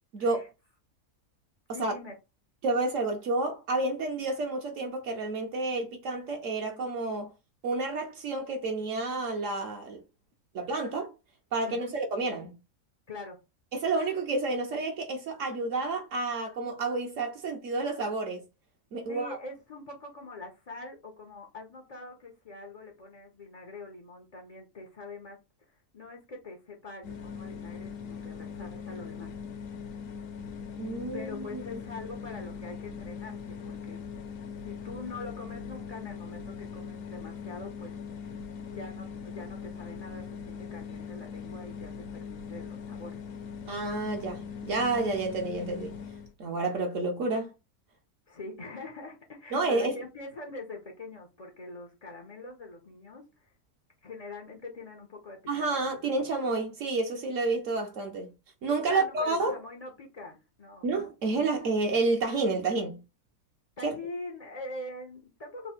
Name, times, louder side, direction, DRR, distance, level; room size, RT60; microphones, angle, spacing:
voice 1, 0.1-0.5 1.8-1.9 2.6-7.3 7.6-10.0 10.5-11.1 11.5-12.5 13.7-18.4 18.9-19.4 30.8-31.8 43.7-46.0 46.4-47.5 49.5-49.9 55.5-58.3 58.6-59.6 60.8-63.0 63.8-63.9, right 3 dB, 65° right, 1.0 m, -30 dB
voice 2, 1.7-2.1 11.7-12.0 13.1-13.4 19.1-25.4 25.7-29.3 29.7-29.8 31.1-34.0 34.6-38.0 38.7-43.2 48.3-53.5 54.0-55.9 58.9-60.9 63.8-65.7, left 2 dB, 45° left, 0.5 m, -44 dB
sound 1, 27.0-46.3, left 6 dB, 65° left, 1.0 m, -41 dB
3.4 x 2.1 x 4.2 m
omnidirectional pair, 1.6 m